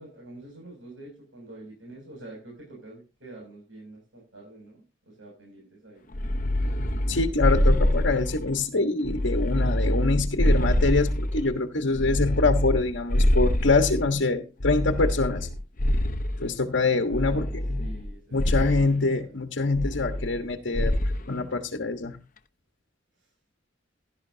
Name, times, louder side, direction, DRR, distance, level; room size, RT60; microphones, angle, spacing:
voice 1, 0.0-6.0 17.0-19.0 23.1-23.3, right 2 dB, 80° right, -2 dB, 7.0 m, -46 dB
sound 1, 6.1-8.6 9.0-11.5 12.0-14.1 14.6-16.5 17.1-18.1 18.4-18.9 19.7-20.5 20.8-21.2, left 1 dB, 45° left, 1.0 m, -25 dB
voice 2, 7.1-15.5 16.4-17.9 18.3-20.9 21.3-22.2, left 3 dB, 70° left, 5 dB, 1.4 m, -25 dB
16.5 x 12.0 x 2.8 m, 0.29 s
head